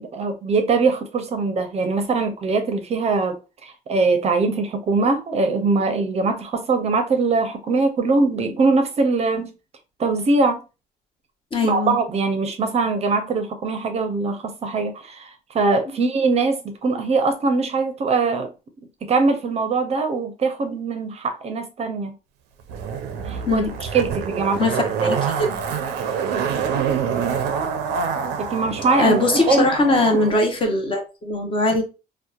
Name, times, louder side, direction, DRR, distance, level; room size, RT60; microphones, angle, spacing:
voice 1, 0.0-9.5 10.0-10.6 11.6-18.5 19.0-22.1 23.2-25.2 28.4-30.2, right 3 dB, 40° right, 0.5 m, -22 dB
voice 2, 11.5-12.0 23.5-23.7 24.6-24.7 25.0-25.5 29.0-31.8, left 2 dB, 30° left, 0.7 m, -20 dB
Zipper (clothing), 22.7-30.3 30.6-30.7, right 6 dB, 90° right, 0.4 m, -26 dB
2.7 x 2.1 x 2.3 m
cardioid pair, 110°, 17 cm